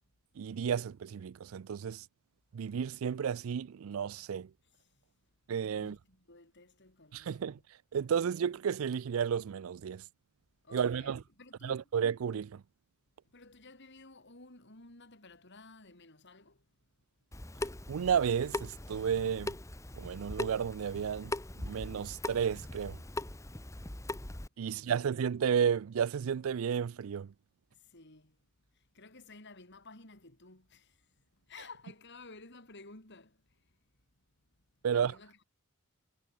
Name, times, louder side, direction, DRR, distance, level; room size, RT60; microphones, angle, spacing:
voice 1, 0.4-2.0 2.5-4.5 5.5-6.0 7.1-7.6 7.9-10.0 10.7-11.2 11.6-12.6 17.9-19.5 19.9-21.3 21.6-23.0 24.6-27.3 34.8-35.1, right 7 dB, 70° right, 0.4 m, -32 dB
voice 2, 5.7-7.6 10.6-11.8 13.3-16.6 24.7-25.1 27.9-28.4 28.9-30.9 31.5-33.4 34.9-35.4, left 3 dB, 55° left, 5.2 m, -54 dB
Water tap faucet / Sink (filling or washing) / Drip, 17.3-24.5, left 1 dB, 15° left, 1.0 m, -41 dB
head